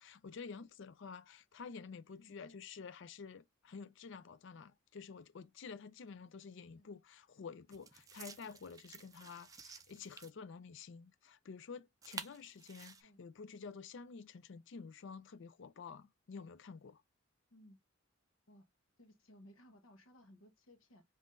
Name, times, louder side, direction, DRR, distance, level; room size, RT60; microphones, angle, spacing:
voice 1, 0.0-17.0, left 5 dB, 65° left, 0.4 m, -50 dB
voice 2, 2.2-2.6 6.7-6.9 13.0-13.2 17.5-17.8 18.5-18.7 19.0-21.0, equal, 80° left, 0.9 m, -61 dB
sound 1, 6.1-6.2 7.7-10.3 12.0-13.0, right 5 dB, 20° right, 0.4 m, -51 dB
5.5 x 2.6 x 2.5 m
head